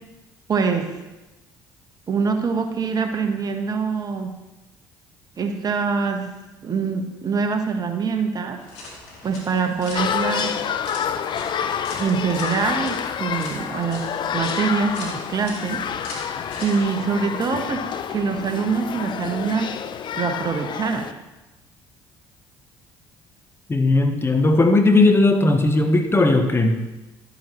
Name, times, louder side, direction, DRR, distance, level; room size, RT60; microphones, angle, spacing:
voice 1, 0.5-0.9 2.1-4.3 5.4-6.3 6.6-8.6 9.2-10.6 12.0-15.8 16.6-19.7 20.1-21.1, right 5 dB, 40° right, 5 dB, 1.3 m, -24 dB
sound 1, 8.6-16.8, left 2 dB, 80° left, 2.2 m, -40 dB
sound 2, 9.9-21.1, left 8 dB, 50° left, 0.6 m, -28 dB
voice 2, 23.7-26.8, left 2 dB, 25° left, 6 dB, 1.2 m, -17 dB
12.0 x 9.2 x 3.2 m, 1.0 s
hypercardioid pair, 60°, 10 cm